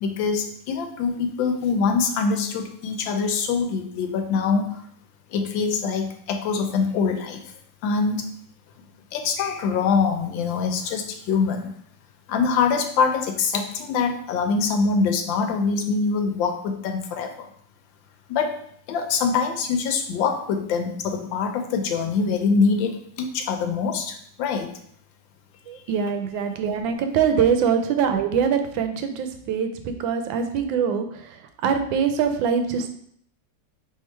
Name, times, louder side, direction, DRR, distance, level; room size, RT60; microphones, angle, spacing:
voice 1, 0.0-4.8 5.3-7.4 7.8-8.2 9.1-11.7 12.3-17.3 18.3-18.5 18.9-24.7, left 5 dB, 85° left, 5 dB, 1.4 m, -24 dB
voice 2, 25.7-32.9, right 7 dB, 90° right, 7 dB, 1.4 m, -23 dB
3.7 x 3.2 x 4.4 m, 0.65 s
omnidirectional pair, 2.0 m